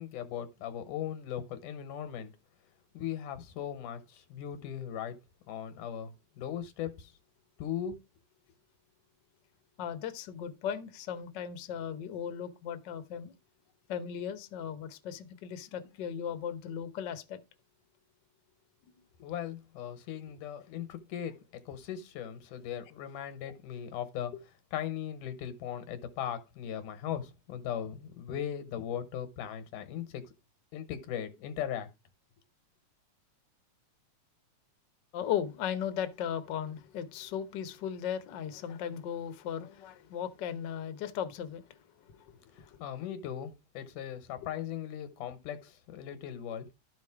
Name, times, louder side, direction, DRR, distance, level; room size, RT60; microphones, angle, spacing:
voice 1, 0.0-2.3 2.9-5.2 5.5-7.1 7.6-8.0 19.2-21.4 21.7-24.3 24.7-30.2 30.7-31.9 42.5-46.7, left 9 dB, 90° left, 2.7 m, -38 dB
voice 2, 9.8-13.3 13.9-17.4 18.9-19.0 23.4-23.5 35.1-41.8 42.0-42.3 42.7-42.8, left 9 dB, 75° left, 1.0 m, -37 dB
12.5 x 5.2 x 4.8 m
omnidirectional pair, 3.5 m